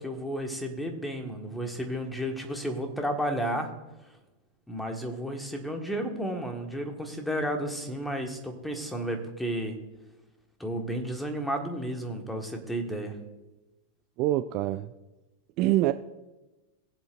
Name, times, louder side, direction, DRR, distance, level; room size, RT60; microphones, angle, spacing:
voice 1, 0.0-3.7 4.7-9.8 10.6-13.2, equal, 5° left, 4 dB, 1.7 m, -32 dB
voice 2, 14.2-14.9 15.6-15.9, right 15 dB, 40° right, 12 dB, 0.4 m, -25 dB
20.5 x 7.9 x 2.6 m, 1.1 s
figure-of-eight pair, 90°, 0 cm